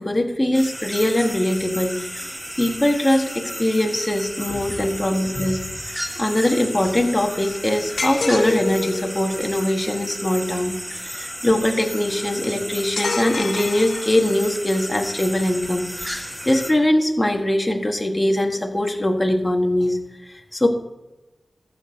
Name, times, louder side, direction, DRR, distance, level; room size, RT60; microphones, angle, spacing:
voice 1, 0.0-20.0 20.3-20.7, left 1 dB, 20° left, 3 dB, 1.6 m, -22 dB
sound 1, 0.5-16.7, equal, 5° right, 1.5 m, -33 dB
sound 2, 8.0-9.2 13.0-14.5, left 3 dB, 70° left, 1.0 m, -27 dB
14.5 x 6.2 x 5.2 m, 1.1 s
wide cardioid pair, 80°, 0 cm